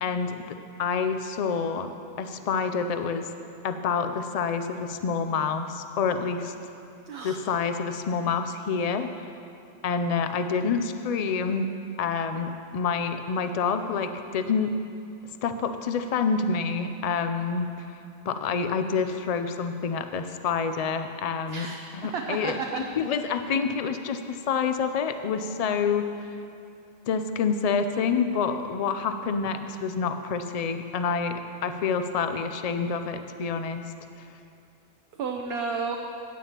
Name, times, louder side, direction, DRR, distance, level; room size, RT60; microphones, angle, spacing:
voice 1, 0.0-0.4 0.8-1.9 2.2-3.3 3.6-6.5 7.2-9.1 9.8-11.7 12.0-14.7 15.4-18.0 18.3-21.7 21.9-26.1 27.1-33.8, left 5 dB, 75° left, 8 dB, 0.3 m, -27 dB
voice 2, 7.1-7.4 21.5-21.7 22.1-22.8 35.2-36.0, right 5 dB, 60° right, 1 dB, 0.9 m, -31 dB
16.5 x 8.9 x 2.9 m, 2.6 s
omnidirectional pair, 1.2 m